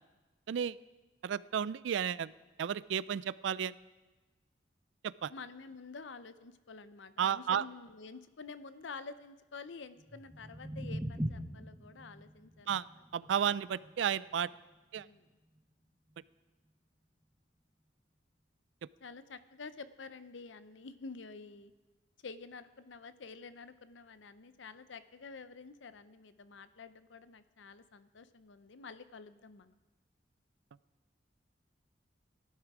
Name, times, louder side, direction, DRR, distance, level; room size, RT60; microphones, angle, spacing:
voice 1, 1.2-2.3 2.6-3.7 5.2-5.3 7.2-7.6 12.7-12.9 13.1-14.5 14.9-15.1, right 8 dB, 75° right, 19 dB, 0.3 m, -32 dB
voice 2, 5.3-12.8 15.0-15.3 19.0-21.7 22.2-29.8, left 4 dB, 80° left, 13 dB, 0.7 m, -49 dB
sound 1, 10.0-16.1, equal, 15° right, 1.1 m, -43 dB
17.0 x 11.5 x 4.8 m, 1.2 s
head